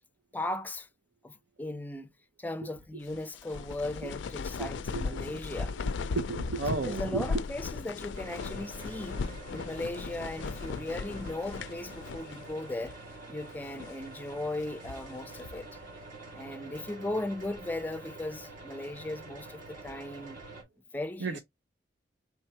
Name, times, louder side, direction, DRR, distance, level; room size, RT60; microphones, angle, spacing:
voice 1, 0.3-0.9 1.2-2.1 2.4-5.7 6.8-12.9 13.3-15.7 16.3-20.4 20.9-21.4, left 2 dB, 10° left, 0.4 m, -37 dB
sound 1, 3.1-12.6 12.8-13.0 13.6-14.1 14.6-15.7, left 4 dB, 85° left, 0.4 m, -37 dB
voice 2, 4.6-5.2 6.1-7.4 21.2-21.4, right 3 dB, 80° right, 0.6 m, -33 dB
sound 2, 8.1-20.6, right 2 dB, 50° right, 1.8 m, -47 dB
4.5 x 3.4 x 2.8 m
head